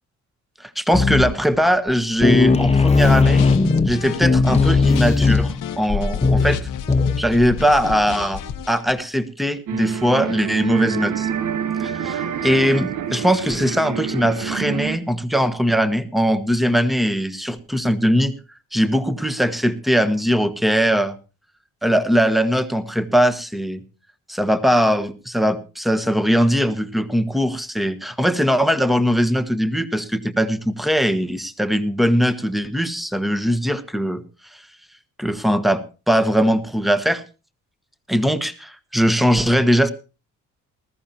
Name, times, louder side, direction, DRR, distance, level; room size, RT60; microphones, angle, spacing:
voice 1, 0.6-3.5 3.9-6.7 7.2-8.4 8.7-11.3 11.8-18.3 18.7-21.2 21.8-23.8 24.3-34.2 35.2-37.2 38.1-39.9, equal, ahead, 12 dB, 1.3 m, -20 dB
sound 1, 0.9-1.5 1.9-2.0 2.2-7.6, left 4 dB, 20° left, 1.1 m, -18 dB
sound 2, 3.0-8.9, left 8 dB, 70° left, 1.2 m, -31 dB
sound 3, 9.7-15.0, right 8 dB, 75° right, 1.4 m, -26 dB
20.0 x 14.0 x 2.9 m, 0.32 s
cardioid pair, 90°, 32 cm